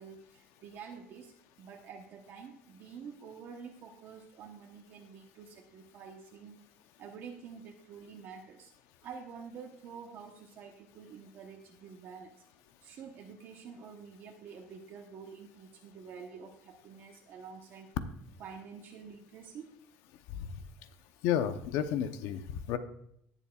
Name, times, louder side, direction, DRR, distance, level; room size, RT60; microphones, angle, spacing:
voice 1, 0.0-6.6 7.0-8.7 9.0-12.4 12.8-17.9 18.4-19.7, right 6 dB, 50° right, 2 dB, 1.0 m, -48 dB
voice 2, 21.2-22.8, left 9 dB, 70° left, 10 dB, 0.8 m, -31 dB
18.5 x 7.2 x 2.4 m, 0.73 s
cardioid pair, 155°, 5 cm